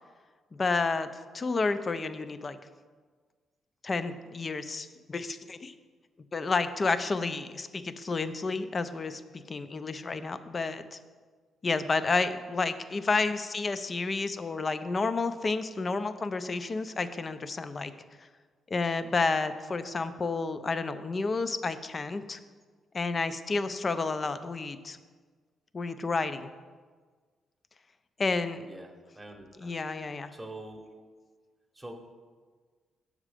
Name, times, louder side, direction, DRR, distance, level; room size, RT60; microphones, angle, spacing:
voice 1, 0.5-1.1 1.3-2.6 3.8-5.7 6.3-11.0 11.6-17.9 18.2-18.3 18.7-22.4 22.9-25.0 25.7-26.5 28.2-28.6 29.6-30.3, left 3 dB, 35° left, 12 dB, 0.4 m, -30 dB
voice 2, 28.7-29.8 30.3-30.8 31.7-31.9, right 2 dB, 10° right, 2 dB, 0.9 m, -45 dB
6.4 x 4.9 x 4.9 m, 1.5 s
cardioid pair, 95°, 0 cm